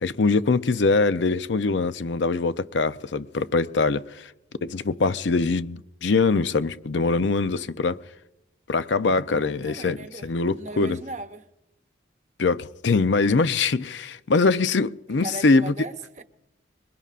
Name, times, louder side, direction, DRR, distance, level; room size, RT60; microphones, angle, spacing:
voice 1, 0.0-4.3 4.6-8.0 8.7-10.0 10.2-11.0 12.4-15.7, left 3 dB, 80° left, 0.6 m, -23 dB
voice 2, 9.3-11.5 15.1-16.2, right 2 dB, 40° right, 0.8 m, -38 dB
25.5 x 22.0 x 2.5 m
head